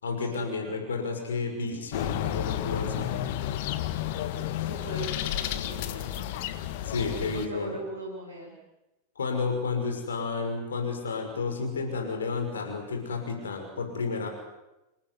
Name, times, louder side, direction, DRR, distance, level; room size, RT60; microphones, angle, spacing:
voice 1, 0.0-3.1 6.8-7.7 9.2-14.3, left 4 dB, 70° left, 4 dB, 5.7 m, -31 dB
sound 1, 1.9-7.5, left 12 dB, 50° left, 1.7 m, -31 dB
voice 2, 4.6-6.4 7.0-7.1 7.3-8.6, equal, 85° left, -4 dB, 7.8 m, -39 dB
28.0 x 19.5 x 9.8 m, 0.97 s
figure-of-eight pair, 90°, 0 cm